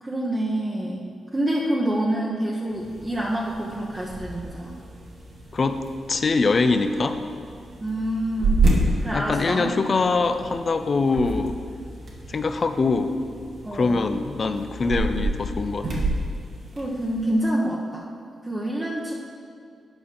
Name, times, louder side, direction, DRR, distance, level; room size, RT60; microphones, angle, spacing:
voice 1, 0.0-4.8 7.8-8.6 9.0-10.0 13.6-14.0 16.8-18.1 18.4-19.1, right 1 dB, 20° right, -4 dB, 1.0 m, -27 dB
sound 1, 2.6-17.4, right 2 dB, 60° right, 1.7 m, -30 dB
voice 2, 6.1-7.2 9.1-11.6 12.3-13.1 13.7-16.1, left 3 dB, 45° left, 9 dB, 0.6 m, -23 dB
9.1 x 5.0 x 5.5 m, 2.3 s
cardioid pair, 65°, 0 cm